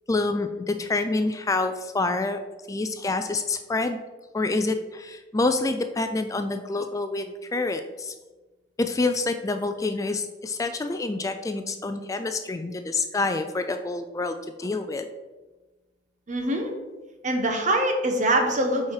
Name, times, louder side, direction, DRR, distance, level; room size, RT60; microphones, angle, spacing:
voice 1, 0.1-2.4 2.7-4.0 4.3-8.1 8.8-15.0, left 3 dB, 20° left, 7 dB, 0.3 m, -27 dB
voice 2, 16.3-16.7 17.2-18.9, right 1 dB, 45° right, 4 dB, 1.2 m, -24 dB
8.3 x 4.3 x 4.8 m, 1.2 s
head